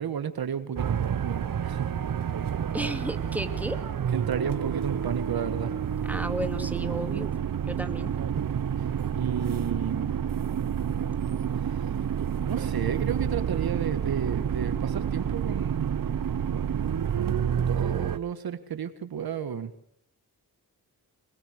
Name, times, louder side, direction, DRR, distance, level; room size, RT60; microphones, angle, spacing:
voice 1, 0.0-1.9 4.1-5.7 9.2-10.2 12.4-16.0 16.5-19.7, right 8 dB, 90° right, 11 dB, 1.8 m, -32 dB
sound 1, 0.8-18.2, right 8 dB, 65° right, 1.0 m, -29 dB
voice 2, 2.7-3.8 6.1-7.3 7.7-8.1, equal, 5° right, 6 dB, 2.8 m, -33 dB
25.5 x 20.0 x 6.7 m, 0.67 s
cardioid pair, 75°, 36 cm